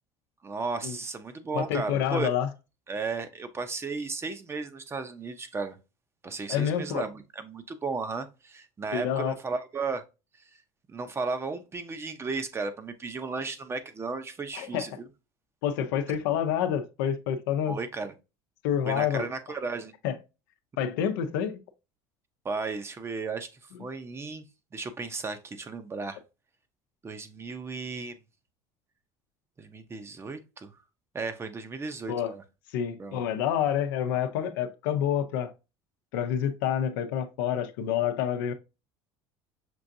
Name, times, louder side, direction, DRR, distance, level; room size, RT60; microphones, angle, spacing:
voice 1, 0.4-2.3 2.9-5.8 6.2-10.0 10.9-15.1 17.7-18.1 18.8-19.9 22.4-23.5 23.8-24.4 24.7-26.2 27.0-28.1 29.6-30.7 31.1-32.4 33.0-33.2, right 4 dB, 25° right, 0.7 m, -34 dB
voice 2, 1.5-2.5 6.5-7.1 8.9-9.4 14.5-14.9 15.6-17.8 18.6-19.3 20.0-20.2 20.8-21.6 32.1-32.3 32.7-35.5 36.1-38.5, left 9 dB, 90° left, 0.6 m, -28 dB
6.1 x 2.5 x 2.6 m
supercardioid pair, 105°, 11 cm